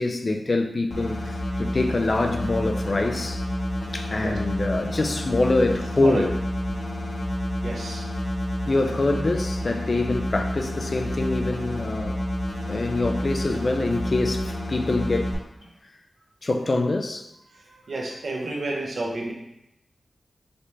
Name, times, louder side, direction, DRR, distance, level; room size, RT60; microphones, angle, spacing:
voice 1, 0.0-3.4 3.9-6.3 8.7-12.2 12.7-15.4 16.4-17.3, left 2 dB, 40° left, 0.4 m, -25 dB
sound 1, 0.9-15.3, left 1 dB, 60° left, 1.0 m, -29 dB
voice 2, 7.6-8.0 17.5-19.3, right 2 dB, 65° right, 0.9 m, -30 dB
5.1 x 2.8 x 3.2 m
wide cardioid pair, 80°, 0 cm